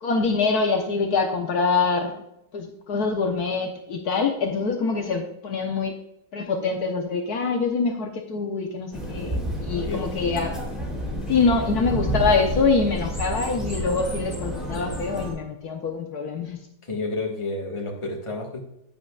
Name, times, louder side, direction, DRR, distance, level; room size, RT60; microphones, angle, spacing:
voice 1, 0.0-2.1 2.5-5.9 6.3-10.6 11.3-16.6, left 4 dB, 65° left, 3 dB, 1.5 m, -24 dB
sound 1, 8.9-15.3, equal, ahead, 3.3 m, -30 dB
voice 2, 9.7-10.0 16.9-18.6, left 2 dB, 20° left, 0 dB, 1.5 m, -30 dB
10.5 x 9.4 x 2.4 m, 0.80 s
omnidirectional pair, 1.8 m